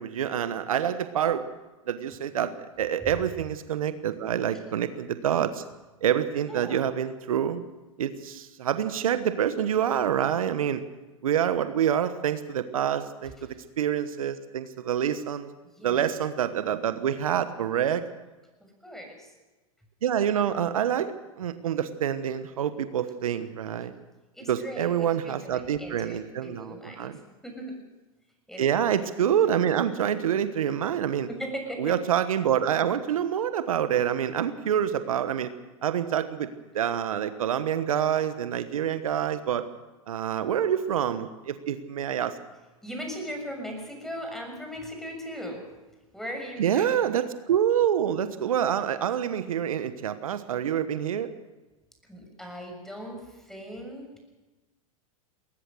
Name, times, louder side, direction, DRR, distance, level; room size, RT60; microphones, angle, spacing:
voice 1, 0.0-1.5 1.9-5.6 6.0-7.6 8.0-10.8 11.2-15.5 15.8-18.0 20.0-23.9 24.5-27.2 28.6-31.3 31.8-35.5 35.8-36.5 36.7-39.7 40.1-42.4 46.6-51.3, right 9 dB, 75° right, 11 dB, 1.2 m, -27 dB
voice 2, 6.4-6.8 15.6-16.0 18.8-19.3 24.3-27.1 27.4-27.8 28.5-28.8 31.3-32.0 42.8-45.6 46.1-47.2 52.0-54.2, equal, ahead, 2 dB, 6.6 m, -38 dB
21.0 x 19.5 x 6.4 m, 1.2 s
hypercardioid pair, 100°, 18 cm